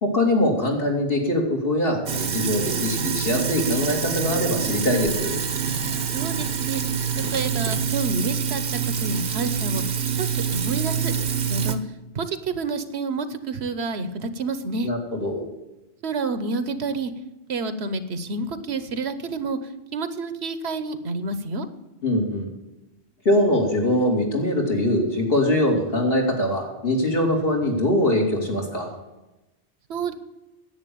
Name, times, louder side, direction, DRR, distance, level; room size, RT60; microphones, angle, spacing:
voice 1, 0.0-5.3 14.8-15.5 22.0-22.5 23.2-29.0, left 1 dB, 60° left, 0 dB, 2.8 m, -22 dB
Sink (filling or washing), 2.1-11.8, right 7 dB, 50° right, 0.9 m, -26 dB
voice 2, 6.1-7.0 7.3-9.8 10.2-11.1 11.4-11.8 12.1-14.9 16.0-17.1 17.5-19.6 19.9-21.7 29.9-30.1, right 3 dB, 70° right, 11 dB, 1.2 m, -29 dB
10.5 x 8.2 x 8.5 m, 1.0 s
omnidirectional pair, 1.1 m